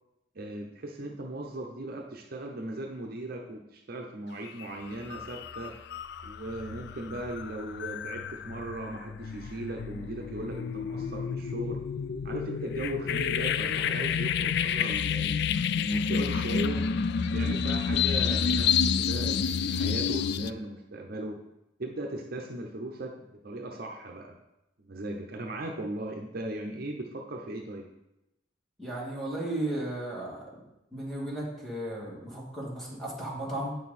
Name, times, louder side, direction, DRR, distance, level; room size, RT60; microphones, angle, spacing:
voice 1, 0.3-5.8 6.2-11.8 12.2-15.4 15.7-16.8 17.3-21.4 21.8-24.4 24.8-27.9, right 1 dB, 50° right, 1 dB, 0.8 m, -38 dB
sound 1, 4.5-4.7 5.0-20.5, left 6 dB, 60° left, 0.4 m, -29 dB
voice 2, 28.8-30.5 30.9-33.7, right 1 dB, ahead, -6 dB, 2.6 m, -35 dB
9.2 x 6.6 x 4.2 m, 0.91 s
head